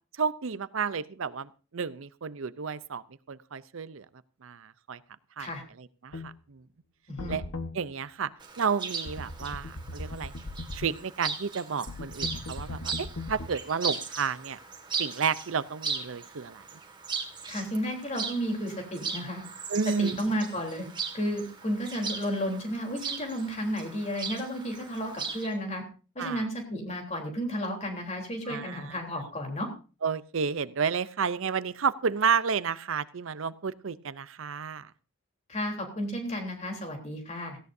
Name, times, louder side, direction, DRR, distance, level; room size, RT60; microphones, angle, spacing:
voice 1, 0.2-3.0 3.3-4.0 4.4-5.0 5.4-5.5 6.0-6.6 7.3-7.4 7.7-8.3 8.6-10.3 10.7-14.6 15.0-16.6 19.7-20.3 26.2-26.4 28.5-28.9 30.0-34.9, right 6 dB, 70° right, 16 dB, 0.6 m, -31 dB
sound 1, 6.1-6.3 7.2-7.7 9.1-10.9 11.9-13.5, left 2 dB, 80° left, 1.3 m, -38 dB
voice 2, 7.1-7.4 17.5-19.4 20.0-20.9 21.1-25.8 26.2-29.7 35.5-37.6, equal, 30° left, 2 dB, 3.5 m, -32 dB
Chirp tweet, 8.4-25.5, right 5 dB, 20° right, 1.8 m, -38 dB
17.5 x 16.0 x 2.7 m, 0.35 s
head